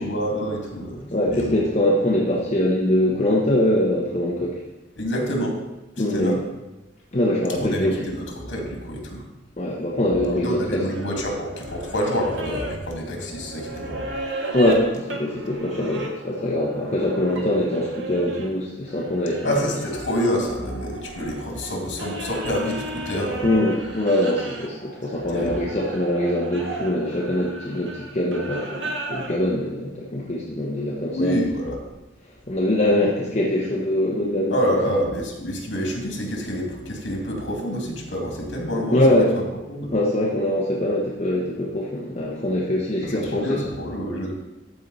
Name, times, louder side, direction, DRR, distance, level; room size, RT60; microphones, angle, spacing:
voice 1, 0.0-1.6 5.0-5.6 6.0-6.4 7.5-9.3 10.3-14.1 19.4-23.5 25.3-25.6 31.1-31.8 34.5-39.4 39.7-39.9 43.0-44.3, equal, 90° left, 0 dB, 2.3 m, -27 dB
voice 2, 1.1-4.6 6.0-6.4 7.1-8.0 9.6-10.8 14.5-19.6 23.4-31.4 32.5-34.6 38.9-39.3 39.9-43.4, left 1 dB, 35° left, -4 dB, 1.1 m, -23 dB
sound 1, 10.9-18.5 18.9-29.4, right 1 dB, 80° right, 1.4 m, -35 dB
13.0 x 4.7 x 4.1 m, 1.1 s
head